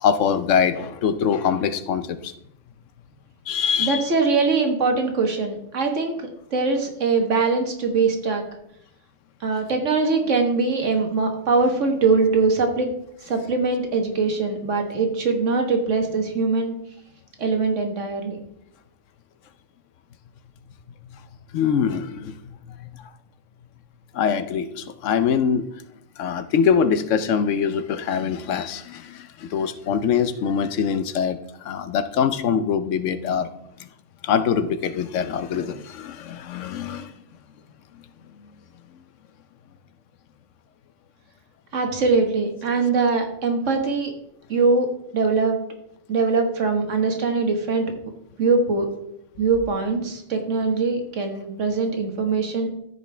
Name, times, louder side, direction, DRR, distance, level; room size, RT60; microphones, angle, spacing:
voice 1, 0.0-2.3 3.5-4.0 21.5-23.1 24.1-25.7 26.2-33.5 33.8-33.9 34.2-37.1, left 7 dB, 85° left, 12 dB, 1.0 m, -23 dB
voice 2, 3.8-8.4 9.4-12.9 13.2-16.7 17.4-18.4 41.7-44.1 44.5-44.9 45.1-45.6 46.1-47.9 48.4-48.9 49.4-52.7, right 4 dB, 80° right, 4 dB, 1.6 m, -22 dB
13.5 x 5.2 x 3.4 m, 0.77 s
omnidirectional pair, 1.3 m